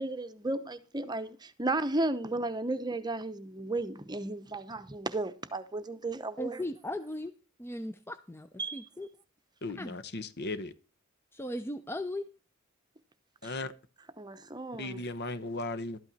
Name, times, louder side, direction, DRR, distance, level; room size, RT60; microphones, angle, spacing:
voice 1, 0.0-6.6 8.6-8.9 13.4-13.6 14.2-15.0, right 2 dB, 20° right, 0.9 m, -34 dB
voice 2, 6.4-7.3 7.6-8.5 8.7-9.1 9.8-10.0 11.3-12.2, left 1 dB, 10° left, 0.6 m, -37 dB
voice 3, 9.6-10.7 13.4-13.7 14.8-16.0, left 2 dB, 55° left, 1.0 m, -36 dB
12.5 x 8.8 x 4.1 m
head